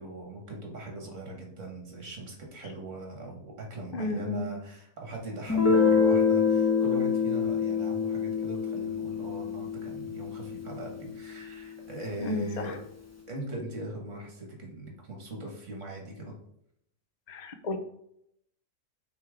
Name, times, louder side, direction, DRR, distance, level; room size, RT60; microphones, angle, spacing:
voice 1, 0.0-12.8 13.3-16.3, right 1 dB, 50° right, 1 dB, 2.0 m, -40 dB
voice 2, 3.9-4.5 12.2-12.8 17.3-17.8, left 2 dB, 45° left, 6 dB, 0.5 m, -32 dB
Guitar, 5.5-11.0, left 6 dB, 10° left, 1.0 m, -26 dB
5.9 x 3.7 x 4.9 m, 0.74 s
omnidirectional pair, 1.6 m